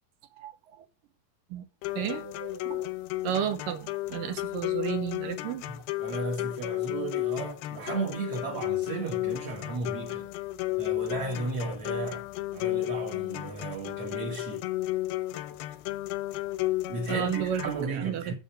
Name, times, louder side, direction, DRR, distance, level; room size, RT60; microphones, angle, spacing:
voice 1, 0.4-0.8 1.5-1.7 2.0-2.9 3.2-5.6 17.1-17.6 17.9-18.3, right 9 dB, 70° right, 2.5 m, -32 dB
sound 1, 1.8-17.8, left 17 dB, 80° left, 2.5 m, -33 dB
voice 2, 5.7-10.3 10.8-12.3 12.5-14.7 16.9-18.3, right 4 dB, 45° right, 2.5 m, -35 dB
7.1 x 7.0 x 6.9 m
omnidirectional pair, 4.5 m